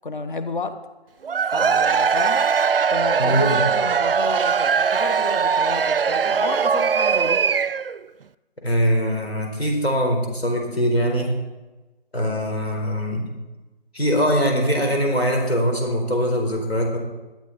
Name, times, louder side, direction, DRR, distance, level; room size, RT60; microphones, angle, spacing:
voice 1, 0.0-0.8 1.4-2.4 2.9-7.4, left 3 dB, 55° left, 10 dB, 1.4 m, -31 dB
Cheering / Crowd, 1.2-8.0, right 6 dB, 65° right, 0.5 m, -20 dB
voice 2, 3.2-3.6 8.6-11.3 12.1-13.3 13.9-17.0, equal, 85° left, 2 dB, 4.6 m, -22 dB
18.5 x 12.0 x 4.3 m, 1.1 s
figure-of-eight pair, 155°, 30 cm